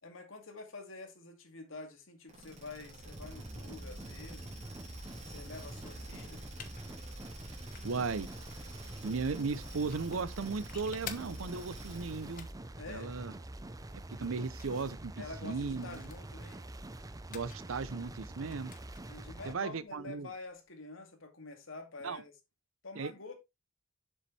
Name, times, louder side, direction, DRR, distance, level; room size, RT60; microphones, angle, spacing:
voice 1, 0.0-4.5 5.3-6.5 12.8-13.1 15.2-16.7 19.1-22.3 22.8-23.3, left 3 dB, 75° left, 2.3 m, -47 dB
sound 1, 2.3-12.5, right 1 dB, 35° right, 3.2 m, -50 dB
sound 2, 3.0-19.6, right 1 dB, 20° right, 0.6 m, -46 dB
sound 3, 5.5-20.6, left 8 dB, 45° left, 1.2 m, -54 dB
voice 2, 7.8-8.3 9.0-12.5 12.9-13.3 14.2-16.1 17.3-18.7 19.5-20.3 22.0-22.2 23.0-23.1, right 4 dB, 85° right, 0.6 m, -36 dB
7.2 x 7.1 x 3.2 m
head